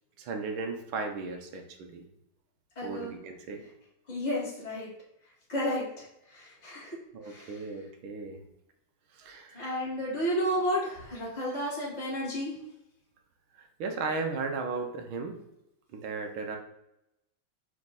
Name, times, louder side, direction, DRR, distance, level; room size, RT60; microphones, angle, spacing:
voice 1, 0.2-2.1 2.8-3.6 7.1-8.4 9.1-9.8 13.5-15.4 15.9-16.6, right 4 dB, 80° right, 4 dB, 1.7 m, -36 dB
voice 2, 2.8-3.1 4.1-4.9 5.5-7.0 7.2-7.6 9.5-12.5, equal, 20° left, -8 dB, 2.3 m, -32 dB
5.0 x 4.7 x 4.1 m, 0.84 s
omnidirectional pair, 2.2 m